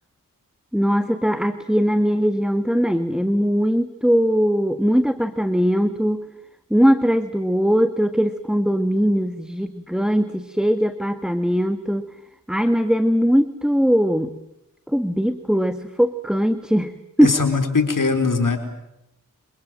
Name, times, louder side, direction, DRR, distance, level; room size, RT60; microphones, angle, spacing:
voice 1, 0.7-6.2 6.7-12.1 12.5-14.3 14.9-16.9 17.2-17.4, equal, ahead, 10 dB, 1.7 m, -20 dB
voice 2, 17.2-18.6, left 4 dB, 65° left, 7 dB, 4.5 m, -20 dB
28.0 x 26.5 x 7.6 m, 0.83 s
cardioid pair, 50°, 35 cm